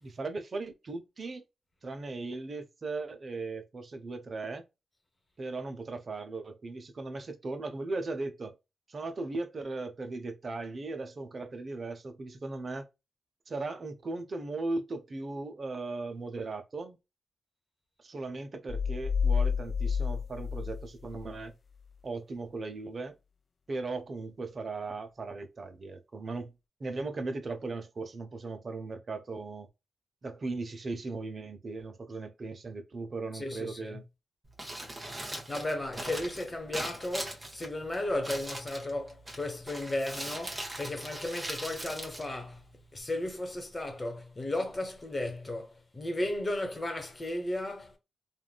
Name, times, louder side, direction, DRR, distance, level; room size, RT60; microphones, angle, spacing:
voice 1, 0.0-1.4 1.8-4.7 5.4-8.6 8.9-12.9 13.5-17.0 18.0-21.5 22.0-23.2 23.7-26.5 26.8-29.7 30.2-34.0, right 3 dB, 50° right, 0.7 m, -38 dB
sound 1, 18.7-21.4, left 6 dB, 50° left, 0.3 m, -30 dB
voice 2, 33.3-34.0 35.5-42.6 42.9-48.0, left 1 dB, 25° left, 1.2 m, -35 dB
Crumpling crinkling, 34.4-43.0, right 1 dB, 25° right, 1.3 m, -41 dB
3.4 x 2.5 x 2.3 m
cardioid pair, 70°, 0 cm